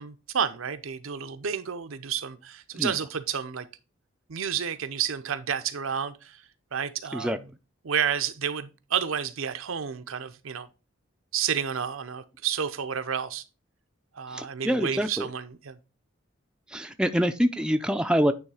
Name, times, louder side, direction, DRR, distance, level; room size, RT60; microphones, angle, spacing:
voice 1, 0.0-3.7 4.3-6.4 6.7-7.5 7.8-10.7 11.3-13.4 14.1-15.8, right 7 dB, 80° right, 0.6 m, -30 dB
voice 2, 14.3-15.3 16.7-18.3, equal, 5° right, 0.4 m, -25 dB
9.4 x 3.2 x 4.8 m
head